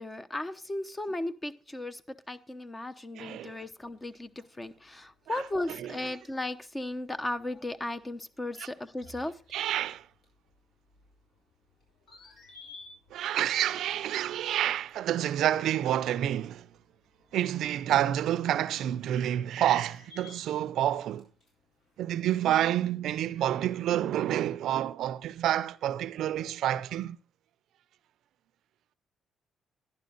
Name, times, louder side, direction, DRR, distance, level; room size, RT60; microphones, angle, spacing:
voice 1, 0.0-2.0 2.3-4.3 4.6-9.3, left 1 dB, 20° left, 0.9 m, -36 dB
voice 2, 3.2-3.5 5.3-5.4 5.7-5.9 8.6-8.7 9.5-10.0 13.1-16.7 17.3-21.3 22.0-27.2, right 11 dB, 80° right, 0.5 m, -28 dB
sound 1, 3.9-22.5, left 3 dB, 65° left, 7.8 m, -59 dB
11.5 x 11.0 x 4.0 m
cardioid pair, 90°, 0 cm